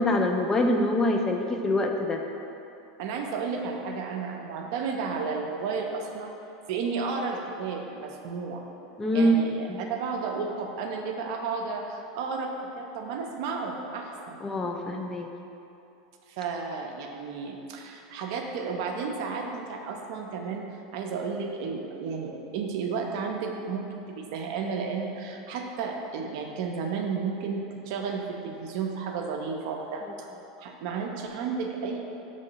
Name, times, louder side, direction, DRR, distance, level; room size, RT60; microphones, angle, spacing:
voice 1, 0.0-2.2 9.0-9.4 9.7-9.8 14.4-15.3, left 1 dB, 20° left, 3 dB, 0.3 m, -24 dB
voice 2, 3.0-6.3 6.7-8.6 9.1-14.4 16.3-20.7 20.9-30.3 30.6-32.0, right 5 dB, 65° right, 2 dB, 0.5 m, -32 dB
5.0 x 3.1 x 2.8 m, 2.8 s
hypercardioid pair, 110°, 2 cm